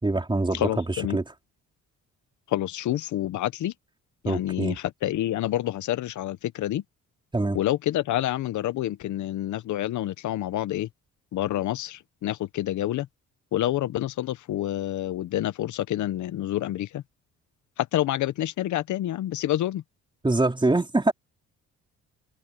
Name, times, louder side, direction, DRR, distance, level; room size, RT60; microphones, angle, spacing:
voice 1, 0.0-1.3 4.2-4.8 7.3-7.6 20.2-21.1, right 2 dB, 15° right, 4.0 m, -24 dB
voice 2, 0.6-1.2 2.5-3.7 4.2-4.7 5.0-6.8 7.5-10.9 11.3-13.1 13.5-17.0 17.9-19.8, left 13 dB, 75° left, 0.9 m, -28 dB
cardioid pair, 90°, 30 cm